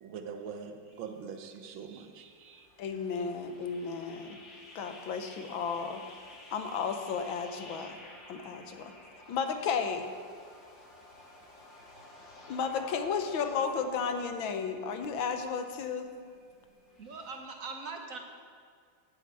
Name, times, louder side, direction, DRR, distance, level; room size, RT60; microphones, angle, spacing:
voice 1, 0.0-2.7, right 6 dB, 85° right, 7 dB, 1.7 m, -43 dB
sound 1, 0.9-17.4, left 2 dB, 40° left, 1.9 m, -53 dB
voice 2, 2.8-4.4 4.8-6.0 6.5-8.0 8.3-8.9 9.3-10.1 12.5-16.1, left 6 dB, 90° left, 7 dB, 1.7 m, -33 dB
voice 3, 17.0-18.2, right 4 dB, 50° right, 3 dB, 1.4 m, -41 dB
8.8 x 8.8 x 8.2 m, 2.1 s
omnidirectional pair, 2.1 m